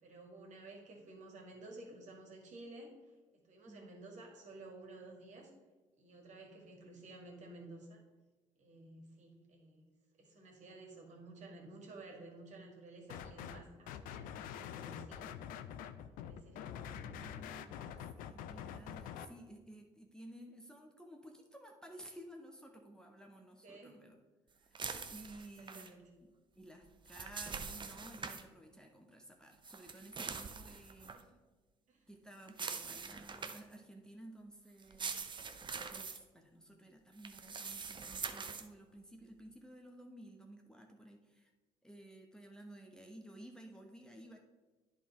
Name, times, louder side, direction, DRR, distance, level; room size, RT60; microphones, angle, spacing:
voice 1, 0.0-3.0 3.3-5.5 6.0-8.0 8.6-9.9 10.2-15.3 16.1-17.3 17.6-18.2 23.6-24.0 25.6-26.0 31.1-31.3 31.9-32.0, right 2 dB, 50° right, 1 dB, 2.0 m, -53 dB
voice 2, 3.7-4.0 16.8-24.2 24.6-31.3 32.1-35.3 35.6-41.5 41.8-44.4, right 1 dB, 5° left, 1 dB, 1.0 m, -55 dB
sound 1, 13.1-13.6 13.9-19.2, left 9 dB, 65° left, 0.5 m, -46 dB
sound 2, 24.8-25.9 26.9-28.4 29.6-31.2 32.5-33.8 34.8-36.2 37.2-38.7, right 5 dB, 30° right, 0.7 m, -44 dB
10.5 x 3.6 x 4.4 m, 1.2 s
hypercardioid pair, 55°, 16 cm